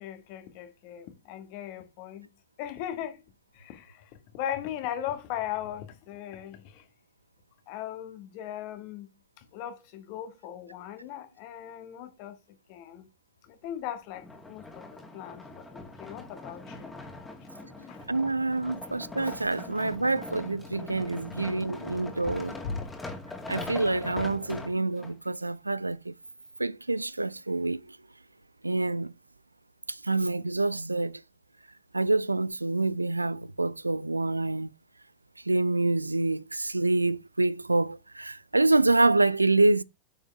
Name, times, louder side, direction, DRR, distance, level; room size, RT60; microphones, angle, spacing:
voice 1, 0.0-2.3 2.6-3.2 3.5-6.9 7.7-9.1 9.4-12.4 12.7-13.1 13.4-17.1 17.6-18.0 19.7-19.8 21.4-21.5 21.9-22.9, left 10 dB, 45° left, 1.9 m, -38 dB
sound 1, 14.1-25.1 25.8-25.9, left 2 dB, 10° left, 2.3 m, -42 dB
voice 2, 18.1-22.6 23.5-26.1 26.6-28.0 28.6-29.1 29.9-31.2 31.9-34.7 35.5-39.8, right 2 dB, 85° right, 0.4 m, -26 dB
9.3 x 7.1 x 3.6 m
figure-of-eight pair, 90°, 0 cm